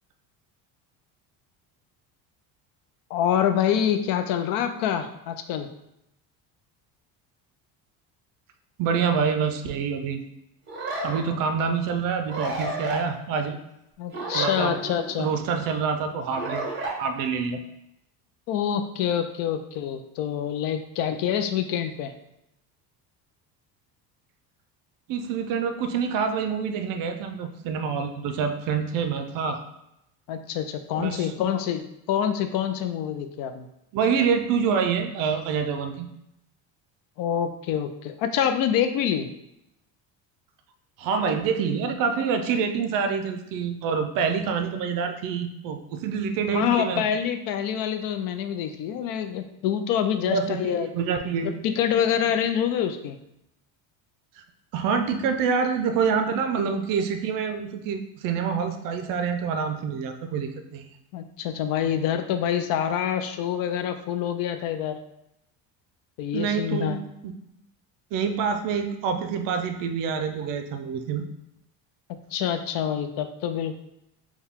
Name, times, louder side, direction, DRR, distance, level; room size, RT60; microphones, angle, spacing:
voice 1, 3.1-5.7 14.0-15.3 18.5-22.1 30.3-33.7 37.2-39.3 46.5-50.9 51.6-53.2 61.1-65.0 66.2-67.0 72.1-73.7, left 9 dB, 60° left, 8 dB, 0.5 m, -26 dB
voice 2, 8.8-10.2 11.0-13.6 14.2-14.8 15.2-16.7 17.0-17.6 25.1-29.6 31.0-31.3 33.9-36.1 41.0-47.1 50.2-51.6 54.7-60.9 66.3-67.3 68.1-71.2, right 6 dB, 60° right, 7 dB, 0.5 m, -26 dB
sound 1, 10.7-11.2 12.3-13.0 14.1-15.2 16.3-16.9, right 2 dB, 30° right, 0.9 m, -31 dB
4.5 x 2.3 x 3.5 m, 0.83 s
cardioid pair, 150°, 39 cm